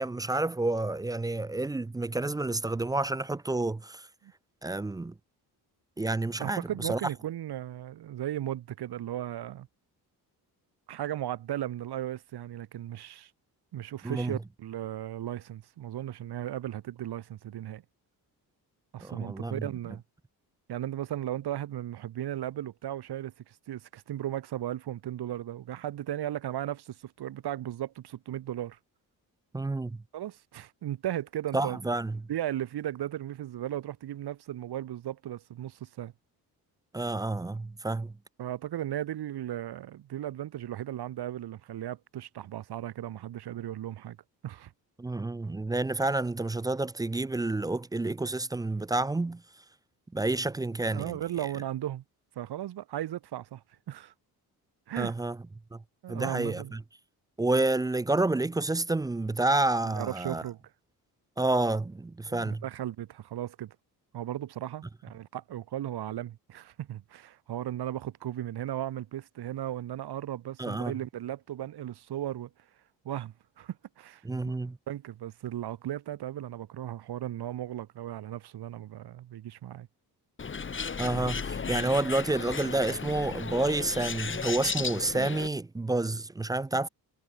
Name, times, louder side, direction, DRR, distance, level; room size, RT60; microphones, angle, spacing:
voice 1, 0.0-4.0 4.6-5.1 6.0-7.0 14.0-14.4 19.0-19.7 29.5-30.0 31.5-32.2 36.9-38.1 45.0-49.4 50.1-51.2 55.0-55.4 55.7-55.8 56.1-56.8 57.4-60.4 61.4-62.6 70.6-70.9 74.2-74.8 81.0-86.9, right 2 dB, 10° right, 0.4 m, -29 dB
voice 2, 6.4-9.7 10.9-13.3 13.7-17.8 18.9-20.0 20.7-28.8 30.1-31.8 32.3-36.1 38.4-44.2 44.4-44.7 50.9-52.0 52.3-54.1 54.9-55.2 56.0-56.7 59.8-60.6 62.3-63.8 64.1-72.5 73.0-74.5 74.9-79.9, right 12 dB, 80° right, 4.8 m, -36 dB
Bird, 80.4-85.5, left 5 dB, 30° left, 2.7 m, -35 dB
cardioid pair, 135°, 39 cm